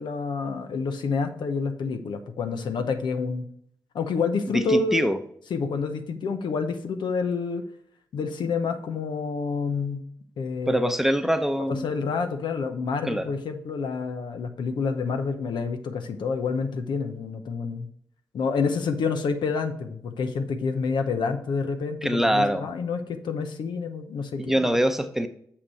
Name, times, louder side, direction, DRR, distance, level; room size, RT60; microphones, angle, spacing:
voice 1, 0.0-3.5 3.9-5.1 5.5-7.6 8.1-10.0 10.4-10.9 11.7-17.9 18.3-24.7, left 5 dB, 80° left, 7 dB, 0.8 m, -28 dB
voice 2, 4.5-5.2 10.7-11.9 13.0-13.2 22.0-22.7 24.4-25.3, equal, 5° right, 8 dB, 0.8 m, -23 dB
6.5 x 5.9 x 4.2 m, 0.65 s
cardioid pair, 55°, 8 cm